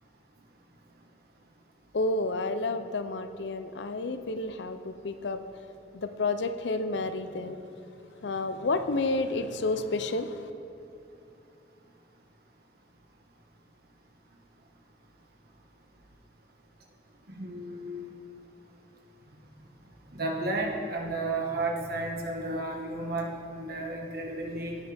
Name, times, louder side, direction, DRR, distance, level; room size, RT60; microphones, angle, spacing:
voice 1, 1.9-5.4 5.9-7.6 8.2-10.5, left 2 dB, 70° left, 10 dB, 0.6 m, -30 dB
voice 2, 17.3-18.0 20.1-24.8, right 2 dB, 60° right, 0 dB, 1.5 m, -33 dB
16.0 x 8.9 x 3.5 m, 2.7 s
head